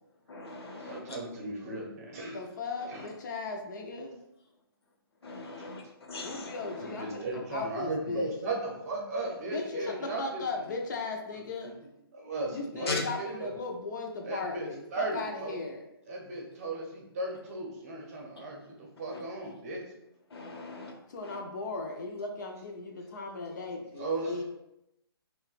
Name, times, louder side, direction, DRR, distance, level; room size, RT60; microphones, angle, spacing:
voice 1, 0.3-1.2 2.8-3.1 5.2-7.0 12.9-13.0 18.4-18.5 19.1-19.2 20.3-20.9 21.2-21.4, left 3 dB, 75° left, 1 dB, 0.8 m, -39 dB
voice 2, 0.8-2.4 2.9-3.0 6.8-10.6 11.8-13.5 14.2-15.6 16.1-19.8 23.1-23.2 24.0-24.4, right 2 dB, 35° right, -1 dB, 0.7 m, -36 dB
voice 3, 2.3-4.2 6.2-8.4 9.5-11.7 12.5-15.9 21.1-24.4, left 3 dB, 50° left, 2 dB, 0.4 m, -37 dB
2.3 x 2.2 x 3.9 m, 0.85 s
hypercardioid pair, 155°, 13 cm